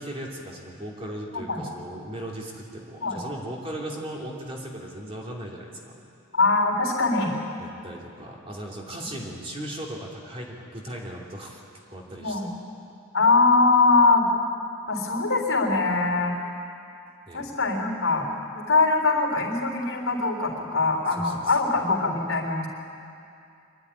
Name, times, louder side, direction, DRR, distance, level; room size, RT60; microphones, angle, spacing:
voice 1, 0.0-6.0 7.6-11.6 11.9-12.4 17.3-17.5 21.2-21.6, right 1 dB, 25° right, -2 dB, 2.8 m, -37 dB
voice 2, 6.3-7.4 12.2-12.5 13.1-14.3 14.9-16.4 17.3-18.3 18.5-22.7, left 3 dB, 75° left, 0 dB, 3.7 m, -22 dB
24.5 x 11.5 x 10.0 m, 2.5 s
head